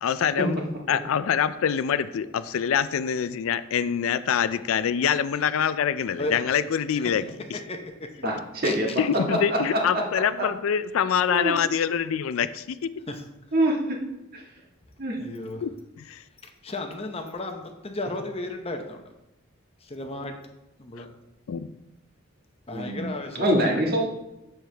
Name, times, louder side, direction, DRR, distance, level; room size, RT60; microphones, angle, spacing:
voice 1, 0.0-0.6 0.9-7.6 9.0-12.8 15.6-15.7 16.0-16.2 21.5-21.7, left 8 dB, 70° left, 14 dB, 0.4 m, -25 dB
voice 2, 8.2-9.0 9.5-9.6 11.3-11.6 13.5-14.0 14.3-14.4 15.0-15.2 22.7-23.1 23.4-24.1, right 1 dB, 45° right, -1 dB, 1.6 m, -24 dB
voice 3, 15.1-15.6 16.6-19.0 19.8-20.3 20.8-21.1 22.7-23.5, left 2 dB, 25° left, 4 dB, 0.7 m, -33 dB
7.5 x 7.2 x 3.4 m, 0.93 s
head